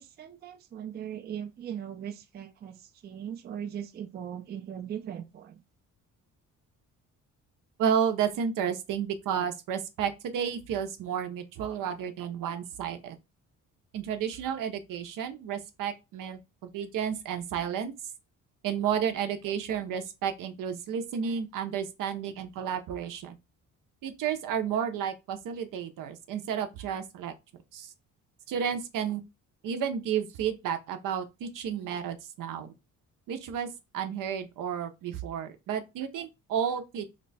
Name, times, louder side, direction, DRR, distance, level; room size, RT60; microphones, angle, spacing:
voice 1, 0.0-5.6, right 9 dB, 30° right, 0.4 m, -39 dB
voice 2, 7.8-13.2 13.9-17.9 18.6-23.3 24.0-27.3 27.7-27.9 28.5-29.2 29.6-32.7 33.3-33.7 33.9-37.1, right 8 dB, 75° right, 0.7 m, -32 dB
2.9 x 2.2 x 4.0 m
cardioid pair, 110°, 33 cm